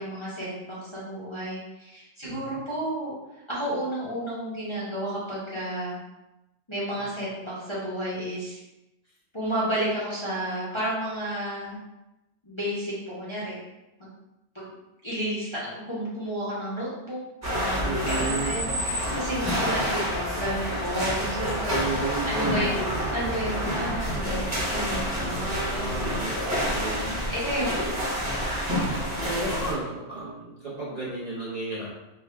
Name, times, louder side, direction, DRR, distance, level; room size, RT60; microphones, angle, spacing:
voice 1, 0.0-3.1 3.5-6.0 6.7-8.6 9.3-11.8 12.4-13.5 14.0-14.1 14.5-14.7 15.0-17.2 17.6-18.7 19.1-26.5 27.0-27.9, right 1 dB, 25° left, -9 dB, 0.9 m, -32 dB
voice 2, 2.2-2.6 17.8-18.6 19.3-19.8 21.7-22.7 25.1-27.1 29.2-31.9, right 3 dB, 40° right, -8 dB, 0.9 m, -33 dB
sound 1, 17.4-29.7, equal, 15° right, 1.1 m, -28 dB
3.6 x 2.3 x 3.3 m, 0.95 s
omnidirectional pair, 1.2 m